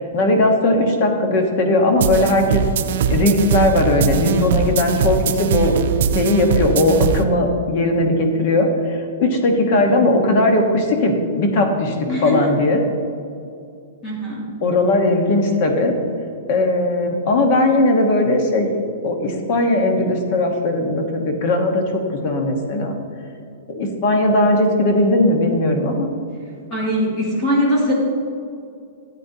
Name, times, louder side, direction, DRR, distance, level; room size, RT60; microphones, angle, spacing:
voice 1, 0.0-2.6 3.1-5.7 6.1-12.0 12.2-12.8 14.6-15.9 16.5-18.7 19.0-21.8 22.2-22.9 23.7-26.1, left 2 dB, 35° left, 4 dB, 1.1 m, -18 dB
sound 1, 2.0-7.2, right 7 dB, 50° right, 0.5 m, -21 dB
voice 2, 12.1-12.4 14.0-14.5 26.7-27.9, equal, 20° left, -4 dB, 2.3 m, -21 dB
13.5 x 8.4 x 2.8 m, 2.4 s
supercardioid pair, 175°, 0 cm